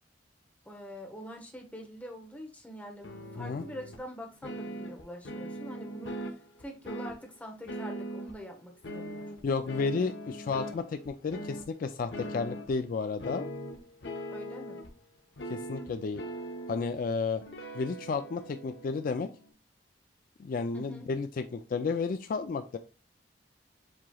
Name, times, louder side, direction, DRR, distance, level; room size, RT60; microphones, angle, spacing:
voice 1, 0.7-6.3 6.6-9.3 14.3-14.8 20.7-21.1, equal, 10° left, 0.9 m, -45 dB
sound 1, 3.0-4.0 4.4-7.2 7.7-8.4 8.8-10.8 11.1-11.6 12.1-12.8 13.2-14.9 15.4-17.0 17.4-19.5, equal, 80° left, 0.9 m, -40 dB
voice 2, 9.4-13.5 15.5-16.2 16.7-17.4 17.7-19.3 20.4-22.8, left 4 dB, 50° left, 0.3 m, -32 dB
7.3 x 3.0 x 2.3 m
head